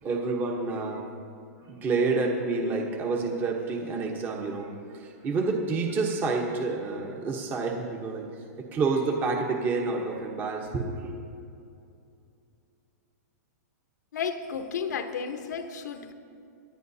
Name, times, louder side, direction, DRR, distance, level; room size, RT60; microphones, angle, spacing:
voice 1, 0.0-1.0 1.7-8.3 8.6-11.2, right 3 dB, 20° right, 2 dB, 1.0 m, -29 dB
voice 2, 14.1-16.1, left 6 dB, 80° left, 7 dB, 1.1 m, -33 dB
25.5 x 10.0 x 2.8 m, 2.5 s
hypercardioid pair, 150°, 9 cm